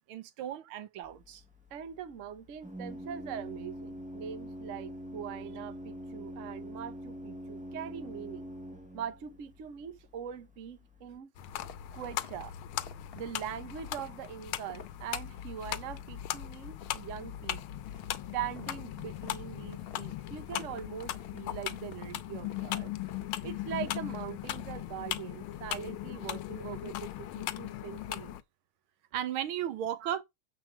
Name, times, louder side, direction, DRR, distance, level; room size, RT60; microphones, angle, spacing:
voice 1, 0.1-1.4 29.1-30.2, right 10 dB, 75° right, 1.6 m, -35 dB
Organ, 1.0-11.2, equal, 5° right, 0.9 m, -45 dB
voice 2, 1.7-8.5 8.9-11.3 11.9-12.5 13.1-17.6 18.3-22.9 23.4-28.3 30.0-30.1, right 9 dB, 55° right, 0.8 m, -42 dB
sound 1, 11.4-28.4, left 13 dB, 85° left, 1.6 m, -38 dB
sound 2, 11.5-12.4 12.8-13.2 13.7-14.1 14.4-15.0 15.3-15.6 15.9-16.3 16.6-20.1 20.5-23.3 23.7-24.0 24.4-24.8, left 6 dB, 50° left, 0.7 m, -54 dB
7.3 x 5.2 x 4.5 m
omnidirectional pair, 2.3 m